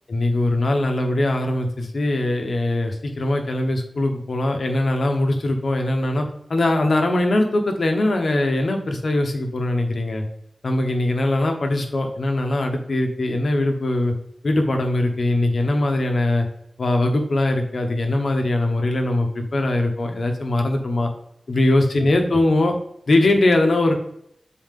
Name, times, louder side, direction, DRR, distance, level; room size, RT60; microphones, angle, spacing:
voice 1, 0.1-6.2 6.5-10.2 10.6-14.1 14.4-16.5 16.8-21.1 21.5-22.7 23.1-23.9, left 1 dB, 70° left, 4 dB, 1.0 m, -21 dB
7.4 x 4.3 x 3.6 m, 0.73 s
wide cardioid pair, 95°, 0 cm